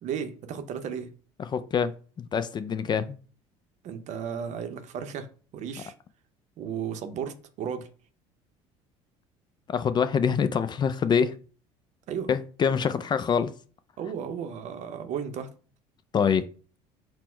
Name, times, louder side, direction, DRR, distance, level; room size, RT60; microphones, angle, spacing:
voice 1, 0.0-1.1 3.8-5.3 5.5-5.9 6.6-7.9 12.1-12.3 14.0-15.5, right 7 dB, 55° right, 0.6 m, -34 dB
voice 2, 1.4-3.2 9.7-11.4 12.3-13.5 16.1-16.5, left 6 dB, 30° left, 0.3 m, -25 dB
4.3 x 2.1 x 4.3 m
supercardioid pair, 90°, 14 cm